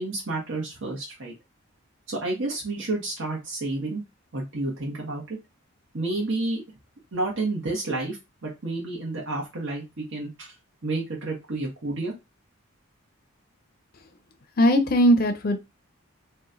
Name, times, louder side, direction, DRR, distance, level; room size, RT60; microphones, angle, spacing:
voice 1, 0.0-1.3 2.1-4.0 4.3-5.4 5.9-6.6 7.1-8.2 8.4-10.5 10.8-12.1, right 2 dB, 60° right, 1.0 m, -30 dB
voice 2, 14.6-15.6, equal, 45° left, 0.5 m, -19 dB
3.0 x 2.2 x 3.7 m
head